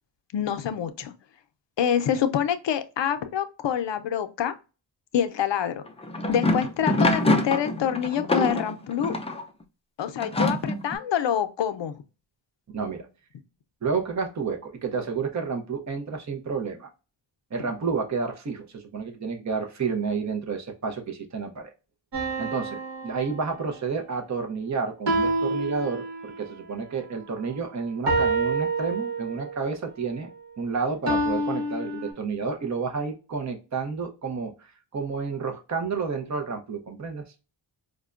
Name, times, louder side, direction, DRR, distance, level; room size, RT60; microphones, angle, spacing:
voice 1, 0.3-1.1 1.8-4.5 5.1-5.8 6.3-9.1 10.0-12.0, left 9 dB, 70° left, 0.6 m, -26 dB
Bucket of Jump Rummage, 5.9-9.4 10.2-11.0, left 1 dB, 15° left, 0.4 m, -25 dB
voice 2, 12.7-13.1 13.8-16.9 17.5-21.7 22.4-30.3 30.6-37.2, right 5 dB, 40° right, 0.7 m, -30 dB
sound 1, 22.1-23.9 25.1-26.5 28.1-29.6 31.1-32.1, right 2 dB, 65° right, 1.4 m, -28 dB
4.9 x 2.2 x 2.4 m
wide cardioid pair, 115°, 45 cm